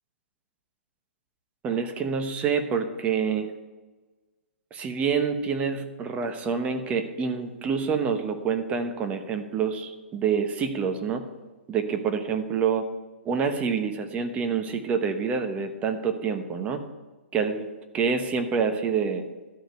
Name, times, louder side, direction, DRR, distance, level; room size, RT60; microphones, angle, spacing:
voice 1, 1.6-3.5 4.7-11.2 11.7-12.8 13.2-16.8 17.3-17.7 17.9-19.2, right 6 dB, 20° right, 6 dB, 1.0 m, -27 dB
12.5 x 5.1 x 7.8 m, 1.3 s
hypercardioid pair, 140°, 7 cm